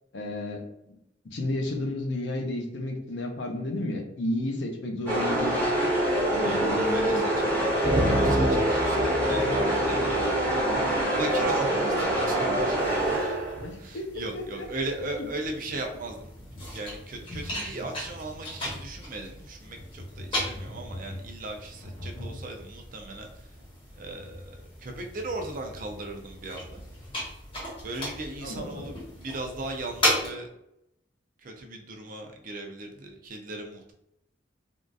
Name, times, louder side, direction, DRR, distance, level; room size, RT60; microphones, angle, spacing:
voice 1, 0.1-1.0 1.3-5.6 6.3-7.3 13.6-14.4 22.1-22.4 28.4-28.8, left 1 dB, 75° left, 2 dB, 0.6 m, -32 dB
sound 1, 5.1-13.7, right 1 dB, 10° left, 1.2 m, -25 dB
voice 2, 6.4-10.4 11.1-12.8 13.1-13.4 13.8-16.3 16.7-23.3 24.0-26.8 27.8-30.5 31.4-33.9, right 2 dB, 45° right, 3 dB, 0.5 m, -38 dB
sound 2, 7.8-11.4, equal, 70° right, 0.9 m, -29 dB
sound 3, 12.8-30.3, left 1 dB, 30° left, 1.3 m, -36 dB
3.5 x 2.4 x 2.6 m, 0.81 s
head